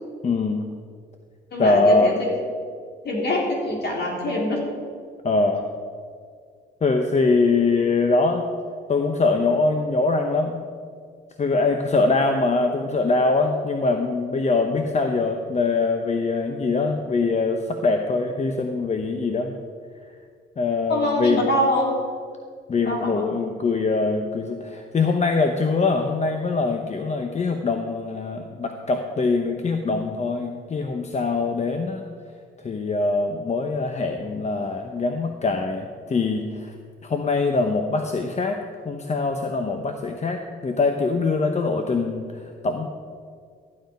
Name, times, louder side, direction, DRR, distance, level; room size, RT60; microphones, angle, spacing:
voice 1, 0.2-0.7 1.6-2.1 5.2-5.6 6.8-8.5 8.9-10.7 11.4-19.5 20.6-21.5 22.7-32.0 32.6-36.7 37.0-42.9, left 3 dB, 35° left, 5 dB, 0.9 m, -23 dB
voice 2, 1.5-2.3 3.0-4.6 20.9-21.9 22.8-23.3, left 1 dB, 60° left, -2 dB, 3.7 m, -24 dB
13.5 x 9.3 x 5.3 m, 2.1 s
cardioid pair, 90°, 20 cm